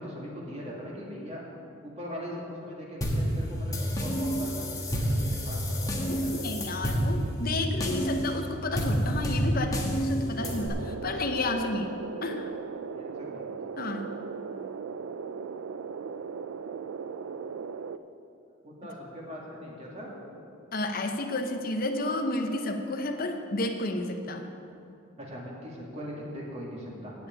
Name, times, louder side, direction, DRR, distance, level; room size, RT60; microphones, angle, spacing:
voice 1, 0.0-1.4 1.8-6.3 8.2-8.4 12.9-13.5 15.0-15.3 18.6-20.1 25.2-27.1, equal, 30° right, -3 dB, 2.0 m, -41 dB
sound 1, 3.0-10.7, equal, 20° left, 1.2 m, -29 dB
voice 2, 6.1-11.9 12.2-12.5 13.8-14.1 20.7-24.5, left 2 dB, 45° left, 5 dB, 0.9 m, -31 dB
sound 2, 10.4-18.0, right 5 dB, 80° right, 0.4 m, -38 dB
9.0 x 7.0 x 8.7 m, 2.6 s
head